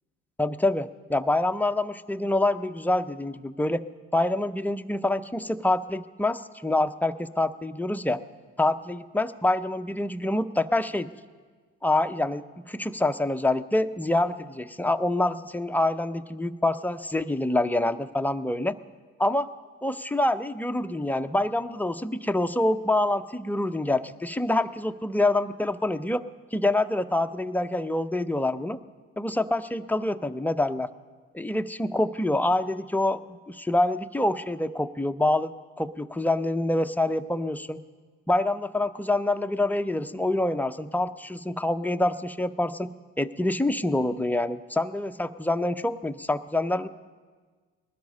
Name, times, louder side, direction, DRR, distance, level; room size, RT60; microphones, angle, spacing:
voice 1, 0.4-3.8 4.1-8.2 8.6-11.1 11.8-18.7 19.2-19.5 19.8-26.2 26.5-28.8 29.2-30.9 31.3-35.5 35.8-37.8 38.3-46.9, left 1 dB, 5° left, 9 dB, 0.6 m, -26 dB
20.0 x 12.5 x 5.4 m, 1.5 s
hypercardioid pair, 60°, 37 cm